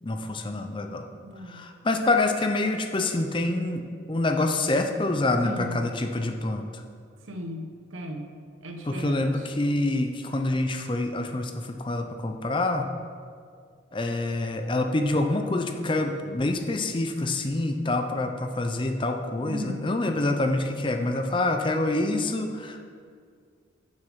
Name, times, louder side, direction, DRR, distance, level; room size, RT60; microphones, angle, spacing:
voice 1, 0.0-1.0 1.5-6.6 8.9-12.9 13.9-22.8, left 2 dB, 25° left, 5 dB, 0.5 m, -26 dB
voice 2, 1.2-1.6 5.4-5.9 7.2-9.5 19.4-19.9, equal, 85° right, 4 dB, 1.0 m, -37 dB
7.0 x 6.5 x 6.2 m, 2.1 s
head